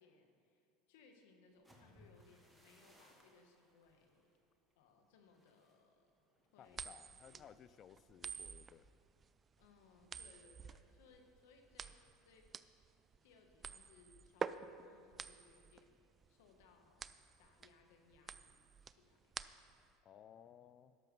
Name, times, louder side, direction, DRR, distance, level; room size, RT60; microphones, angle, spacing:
voice 1, 0.0-4.4 4.8-6.1 6.5-6.8 7.2-7.4 9.6-12.7 13.2-15.9 16.3-18.6 18.8-19.3, left 4 dB, 75° left, 4 dB, 1.3 m, -67 dB
sound 1, 1.5-9.3 9.7-10.0 10.4-10.8, equal, 5° right, 1.4 m, -70 dB
voice 2, 6.6-8.9 20.0-21.0, left 9 dB, 40° left, 14 dB, 0.4 m, -59 dB
sound 2, 6.7-19.9, right 6 dB, 25° right, 0.3 m, -49 dB
12.5 x 6.3 x 5.4 m, 2.6 s
supercardioid pair, 110°, 0 cm